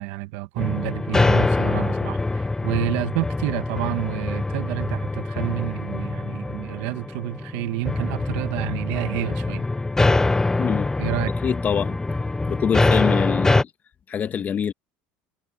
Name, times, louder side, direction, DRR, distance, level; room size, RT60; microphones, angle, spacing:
voice 1, 0.0-9.6 11.0-11.3, right 19 dB, 80° right, 1.5 m, -29 dB
sound 1, 0.6-13.6, left 2 dB, 10° left, 0.8 m, -24 dB
voice 2, 10.6-10.9 11.2-12.0 12.5-13.7 14.1-14.7, left 8 dB, 35° left, 1.7 m, -25 dB
cardioid pair, 125°, 5 cm